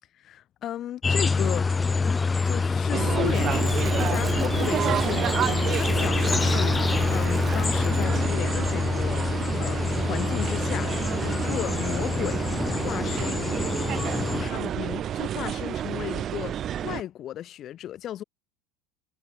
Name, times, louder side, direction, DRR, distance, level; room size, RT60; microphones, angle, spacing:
voice 1, 0.2-1.7 2.4-9.2 9.6-12.4 12.8-13.5 14.4-18.2, left 11 dB, 45° left, 2.2 m, -35 dB
sound 1, 1.0-14.5, left 4 dB, 20° left, 0.5 m, -26 dB
Crackle, 2.9-8.4 8.7-8.8, right 2 dB, 10° right, 1.4 m, -47 dB
sound 2, 2.9-17.0, right 10 dB, 40° right, 0.4 m, -30 dB
hypercardioid pair, 90°, 0 cm